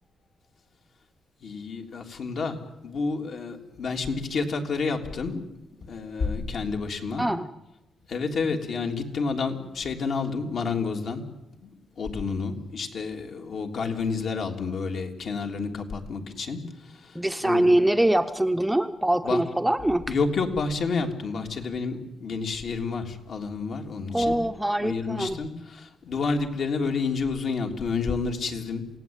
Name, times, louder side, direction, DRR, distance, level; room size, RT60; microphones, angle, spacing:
voice 1, 1.4-2.6 2.8-5.4 5.8-7.2 8.1-11.2 11.6-11.7 12.0-17.7 19.2-19.4 20.1-24.4 24.8-28.8, left 4 dB, 55° left, 3 dB, 3.3 m, -29 dB
voice 2, 17.1-20.1 24.1-25.4, right 1 dB, 5° right, 8 dB, 0.8 m, -23 dB
28.0 x 18.0 x 9.1 m, 0.95 s
cardioid pair, 130°, 0 cm